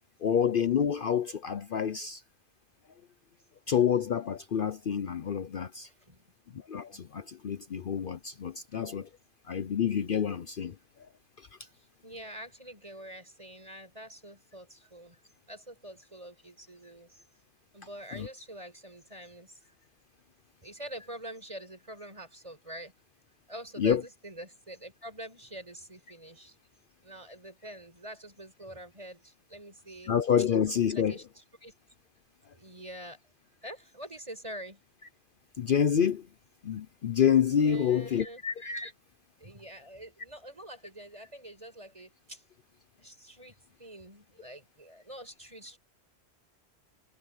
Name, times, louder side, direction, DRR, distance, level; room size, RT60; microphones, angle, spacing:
voice 1, 0.2-2.2 3.7-5.9 6.7-9.1 9.5-10.8 11.4-11.5 18.1-18.3 23.8-24.0 30.1-31.2 35.6-36.3 36.6-38.9, left 8 dB, 55° left, 0.8 m, -28 dB
voice 2, 5.9-6.2 11.6-15.2 15.5-17.2 17.7-19.7 20.6-22.9 23.5-26.6 27.0-30.5 30.9-31.7 32.5-33.2 33.6-34.8 36.7-36.8 37.6-38.4 39.4-42.4 43.0-45.8, right 1 dB, 30° right, 5.7 m, -46 dB
omnidirectional pair, 1.2 m